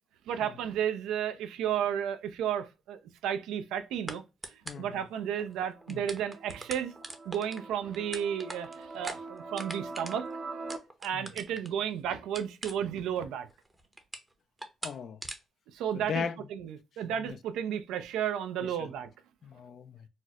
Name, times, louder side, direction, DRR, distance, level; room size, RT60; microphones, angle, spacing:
voice 1, 0.3-4.2 4.7-6.9 7.3-10.3 11.0-13.5 15.7-16.2 16.5-19.1, right 9 dB, 90° right, 0.4 m, -33 dB
sound 1, 2.2-2.4 4.1-4.2 4.4-4.9 5.5-5.6 5.8-11.8 12.3-13.2 13.5-14.3 14.6-14.9 15.2-15.4, right 2 dB, 15° right, 0.6 m, -41 dB
voice 2, 4.7-5.0 5.9-6.1 11.1-11.3 14.8-15.2 15.9-16.4 17.0-17.4 18.6-18.9 19.4-20.1, left 6 dB, 60° left, 0.3 m, -38 dB
sound 2, 5.2-10.8, right 3 dB, 55° right, 0.7 m, -44 dB
4.1 x 2.1 x 2.3 m
cardioid pair, 90°, 0 cm